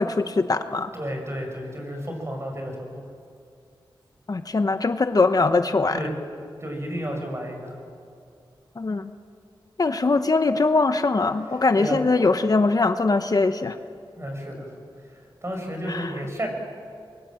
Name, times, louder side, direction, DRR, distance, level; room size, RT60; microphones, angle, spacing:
voice 1, 0.0-0.9 4.3-6.0 8.8-9.1 9.8-13.8 15.9-16.2, left 3 dB, 45° left, 9 dB, 0.9 m, -22 dB
voice 2, 0.9-3.0 5.9-6.1 6.6-7.7 11.8-12.0 14.2-14.7 15.4-16.5, equal, 30° right, 3 dB, 6.4 m, -31 dB
25.0 x 23.0 x 7.7 m, 2.3 s
wide cardioid pair, 80°, 9 cm